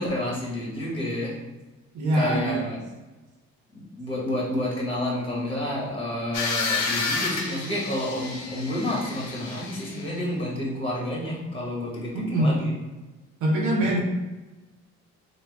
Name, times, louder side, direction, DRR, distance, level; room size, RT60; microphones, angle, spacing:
voice 1, 0.0-1.4 2.1-2.8 3.7-12.7 13.8-13.9, left 1 dB, 20° left, -4 dB, 1.3 m, -29 dB
voice 2, 1.9-2.6 12.1-12.6 13.4-14.0, right 1 dB, 75° right, -1 dB, 0.7 m, -23 dB
sound 1, 6.3-10.1, left 4 dB, 65° left, 0.7 m, -30 dB
3.3 x 2.2 x 3.3 m, 1.1 s
cardioid pair, 90°, 30 cm